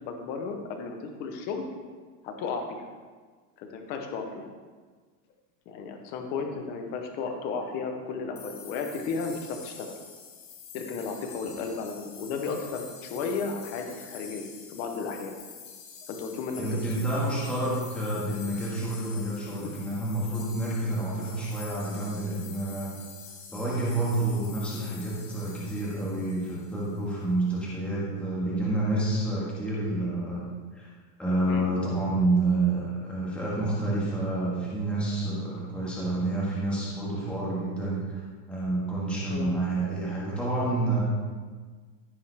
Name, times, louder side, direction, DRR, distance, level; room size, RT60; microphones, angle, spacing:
voice 1, 0.0-1.6 2.2-2.9 3.6-4.5 5.7-9.9 10.7-15.4 16.1-17.0 19.5-19.7 31.5-31.7 39.3-39.6, left 4 dB, 20° left, 4 dB, 0.6 m, -34 dB
sound 1, 8.3-27.0, left 6 dB, 80° left, 1.9 m, -47 dB
voice 2, 16.6-22.9 23.5-30.4 30.7-30.9 31.2-38.2 38.5-41.0, right 2 dB, ahead, -7 dB, 1.5 m, -29 dB
14.5 x 5.4 x 3.3 m, 1.5 s
supercardioid pair, 165°, 49 cm